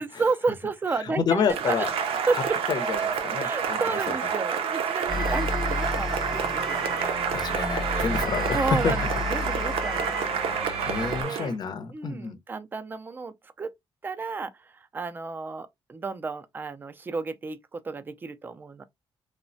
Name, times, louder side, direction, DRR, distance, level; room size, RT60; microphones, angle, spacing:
voice 1, 0.0-1.9 2.3-2.6 3.4-7.2 7.9-8.1 8.5-10.1 10.4-10.7 11.1-11.5 11.9-13.7 14.0-18.8, right 4 dB, 20° right, 0.3 m, -32 dB
voice 2, 1.0-1.9 2.3-2.4 2.7-4.0 5.1-5.3 7.3-9.2 10.9-12.4, left 6 dB, 45° left, 0.5 m, -29 dB
Cheering / Applause, 1.5-11.5, right 7 dB, 85° right, 0.5 m, -29 dB
sound 1, 5.1-11.2, left 3 dB, ahead, 0.7 m, -32 dB
3.1 x 2.1 x 2.5 m
wide cardioid pair, 155°, 10 cm